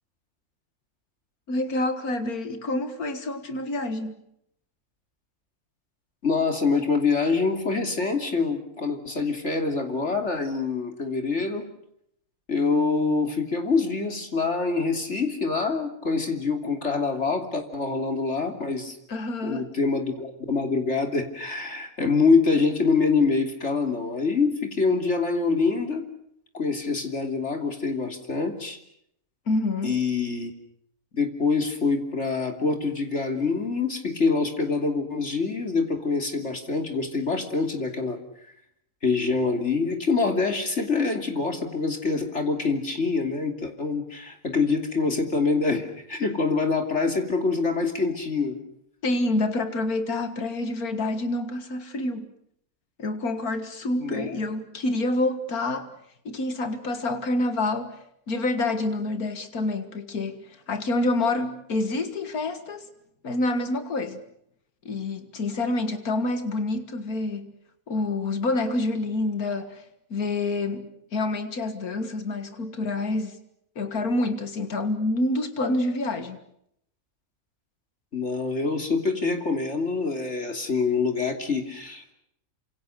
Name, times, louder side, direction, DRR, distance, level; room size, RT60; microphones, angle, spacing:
voice 1, 1.5-4.2 19.1-19.7 29.5-30.0 49.0-52.3 53.0-55.9 56.3-62.9 63.2-64.2 64.9-67.5 67.9-73.4 73.8-76.4, left 2 dB, 80° left, 2.2 m, -27 dB
voice 2, 6.2-11.7 12.5-19.0 19.4-26.0 26.5-28.8 29.8-30.5 31.2-38.2 39.0-48.6 54.0-54.4 78.1-82.1, left 4 dB, 50° left, 3.4 m, -25 dB
28.5 x 26.5 x 6.7 m
omnidirectional pair, 1.5 m